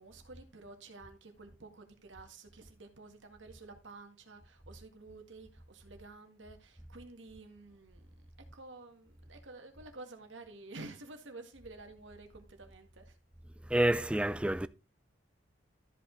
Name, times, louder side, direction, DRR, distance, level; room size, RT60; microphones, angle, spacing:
voice 1, 0.0-13.2, right 3 dB, 70° right, 1.9 m, -51 dB
voice 2, 13.7-14.7, right 1 dB, 5° right, 0.4 m, -28 dB
13.0 x 5.2 x 3.9 m
head